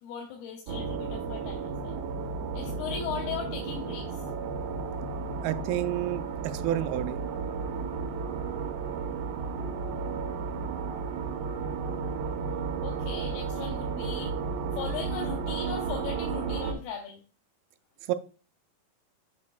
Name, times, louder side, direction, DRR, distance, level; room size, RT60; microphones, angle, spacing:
voice 1, 0.0-2.0 2.5-4.3 12.8-14.4 14.7-17.2, left 7 dB, 85° left, 2 dB, 2.7 m, -38 dB
sound 1, 0.7-16.7, right 5 dB, 75° right, 2.5 m, -33 dB
voice 2, 5.4-6.2 6.5-7.2 18.1-18.2, right 13 dB, 90° right, 10 dB, 2.5 m, -29 dB
7.4 x 7.4 x 2.2 m, 0.35 s
omnidirectional pair, 4.3 m